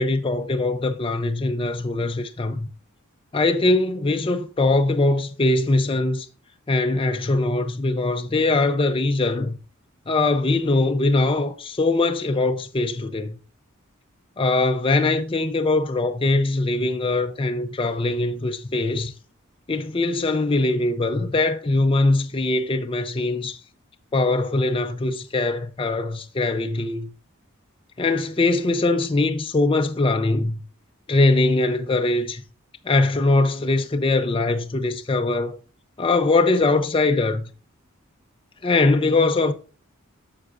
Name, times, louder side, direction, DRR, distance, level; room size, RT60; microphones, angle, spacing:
voice 1, 0.0-2.7 3.3-6.3 6.7-9.6 10.1-13.4 14.4-19.1 19.7-23.6 24.1-27.1 28.0-30.6 31.1-32.4 32.8-35.6 36.0-37.5 38.6-39.5, left 2 dB, 25° left, 0.5 m, -22 dB
9.4 x 6.6 x 2.5 m
head